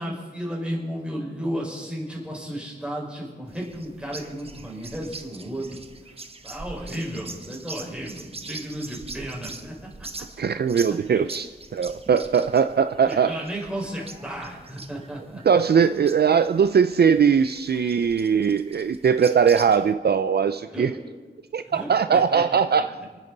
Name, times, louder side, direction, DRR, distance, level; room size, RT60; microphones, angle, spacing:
voice 1, 0.0-5.6 6.0-6.2 6.4-9.9 10.2-10.3 11.1-11.3 13.0-15.4 20.7-21.0 21.7-22.8, equal, 5° right, -3 dB, 4.8 m, -33 dB
sound 1, 3.5-19.9, right 3 dB, 30° right, 1.0 m, -43 dB
voice 2, 10.4-11.5 11.7-13.4 15.4-20.9 21.5-22.9, right 7 dB, 60° right, 11 dB, 0.4 m, -20 dB
29.0 x 9.9 x 4.0 m, 1.4 s
wide cardioid pair, 110°, 19 cm